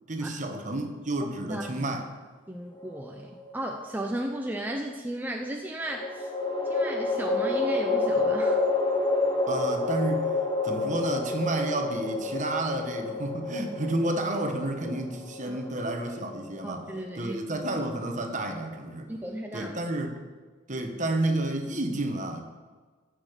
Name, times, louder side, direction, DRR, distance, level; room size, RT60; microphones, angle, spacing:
voice 1, 0.1-2.1 9.5-10.3 10.6-16.9 17.2-19.1 19.5-20.2 20.7-22.4, right 2 dB, 40° right, 5 dB, 1.2 m, -30 dB
voice 2, 1.4-1.8 2.5-6.3 6.6-8.6 15.4-15.6 16.6-17.6 19.1-19.7, right 1 dB, 10° right, 1 dB, 0.6 m, -35 dB
sound 1, 2.8-3.6 5.9-17.2, left 3 dB, 25° left, 1.9 m, -29 dB
15.0 x 6.4 x 5.1 m, 1.4 s
head